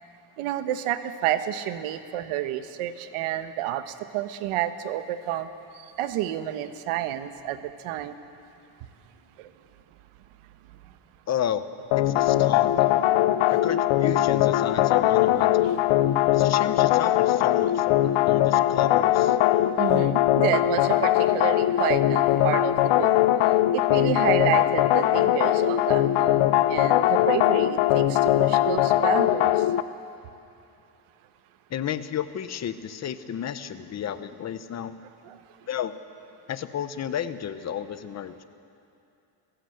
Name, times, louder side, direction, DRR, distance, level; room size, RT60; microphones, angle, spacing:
voice 1, 0.4-5.5 6.0-8.2 9.4-9.5 19.8-23.1 23.7-29.6 35.2-35.4, right 12 dB, 85° right, 10 dB, 1.4 m, -29 dB
voice 2, 11.3-11.6 12.0-12.9 13.5-15.7 16.3-19.4 31.7-35.0 35.7-35.9 36.5-38.4, left 9 dB, 30° left, 12 dB, 0.8 m, -32 dB
sound 1, 11.9-29.8, left 13 dB, 70° left, 0.8 m, -21 dB
27.5 x 16.5 x 7.9 m, 2.7 s
cardioid pair, 160°, 50 cm